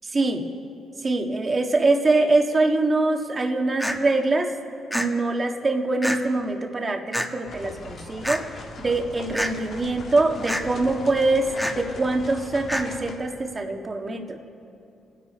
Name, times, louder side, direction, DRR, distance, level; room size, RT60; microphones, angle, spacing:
voice 1, 0.1-0.4 1.0-4.5 4.9-8.4 8.8-14.4, right 2 dB, 30° right, 3 dB, 1.6 m, -23 dB
sound 1, 3.8-4.0 4.9-5.1 6.0-6.2 7.1-7.3 8.2-8.4 9.3-9.5 10.5-10.6 11.6-11.8 12.7-12.8, equal, ahead, 1.2 m, -26 dB
sound 2, 7.5-13.2, left 3 dB, 60° left, 2.1 m, -39 dB
28.5 x 10.5 x 4.3 m, 2.7 s
cardioid pair, 90°, 0 cm